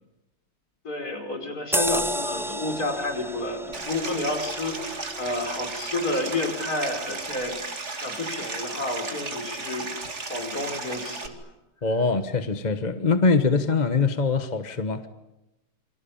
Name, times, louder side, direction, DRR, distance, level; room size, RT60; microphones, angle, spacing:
voice 1, 0.8-9.9 10.3-11.4, left 2 dB, 60° left, 3 dB, 5.6 m, -30 dB
sound 1, 1.7-6.7 7.1-7.3, equal, ahead, 0.9 m, -32 dB
Stream, 3.7-11.3, right 3 dB, 40° right, 2.7 m, -35 dB
voice 2, 11.8-15.1, left 4 dB, 30° left, 9 dB, 1.2 m, -23 dB
28.5 x 24.0 x 8.7 m, 0.98 s
omnidirectional pair, 1.8 m